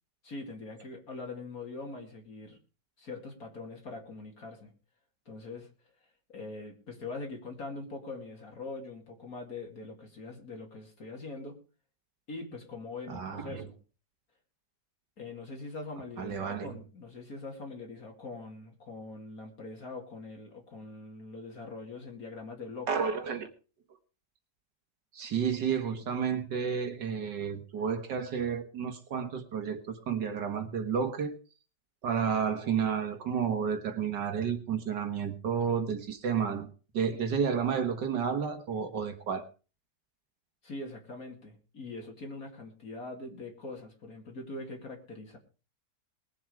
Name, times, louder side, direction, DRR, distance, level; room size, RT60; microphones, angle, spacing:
voice 1, 0.2-2.6 3.0-4.7 5.3-5.7 6.3-11.6 12.3-13.7 15.2-22.9 40.6-45.4, left 3 dB, 55° left, 2 dB, 2.8 m, -42 dB
voice 2, 13.1-13.7 16.2-16.7 22.9-23.5 25.1-31.4 32.0-36.7 36.9-39.4, right 7 dB, 75° right, 6 dB, 2.1 m, -31 dB
20.5 x 7.7 x 4.8 m, 0.35 s
omnidirectional pair, 1.9 m